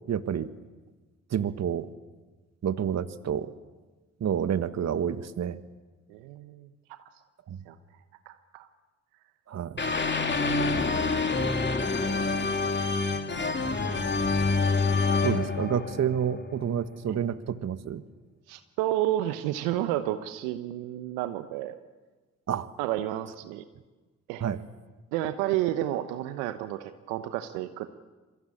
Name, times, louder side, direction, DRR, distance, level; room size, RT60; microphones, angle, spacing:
voice 1, 0.1-0.5 1.3-1.9 2.6-3.5 4.2-5.6 7.5-7.6 9.5-9.9 15.2-18.0 22.5-22.7 24.4-24.6, right 8 dB, 50° right, 13 dB, 1.6 m, -29 dB
voice 2, 6.1-6.7 7.7-7.8 8.3-8.7 17.1-17.2 18.5-21.8 22.8-23.6 24.3-24.4 25.1-27.9, right 13 dB, 80° right, 10 dB, 1.1 m, -31 dB
sound 1, 9.8-16.7, left 3 dB, 35° left, 3.2 m, -27 dB
28.0 x 23.0 x 8.6 m, 1.3 s
hypercardioid pair, 45°, 33 cm